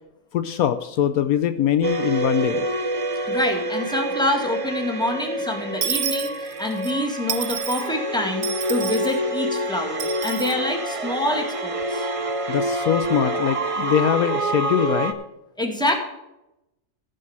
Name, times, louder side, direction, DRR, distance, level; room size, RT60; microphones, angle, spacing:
voice 1, 0.3-2.7 12.5-15.1, left 10 dB, 75° left, 11 dB, 1.0 m, -22 dB
sound 1, 1.8-15.1, right 1 dB, 30° right, 0.6 m, -27 dB
voice 2, 3.3-12.1 15.6-15.9, left 1 dB, 5° left, 2 dB, 1.8 m, -26 dB
Dishes pots and pans / Coin (dropping), 5.8-6.9 7.3-7.9 8.4-9.2 10.0-10.5, right 9 dB, 70° right, 1.3 m, -29 dB
14.5 x 5.4 x 7.2 m, 0.90 s
omnidirectional pair, 1.6 m